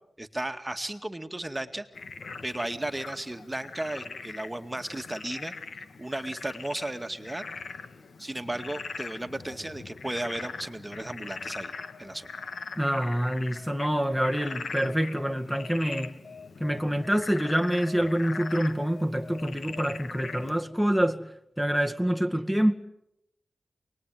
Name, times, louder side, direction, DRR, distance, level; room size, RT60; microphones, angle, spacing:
voice 1, 0.2-1.9 2.4-5.5 6.0-7.4 8.2-11.7 12.0-12.3, right 1 dB, 20° right, 2.2 m, -34 dB
Frog, 2.0-20.6, left 4 dB, 70° left, 1.9 m, -41 dB
voice 2, 12.8-16.1 16.6-21.2 21.6-22.7, equal, 5° left, 2.0 m, -26 dB
28.0 x 20.5 x 9.4 m
cardioid pair, 50°, 0 cm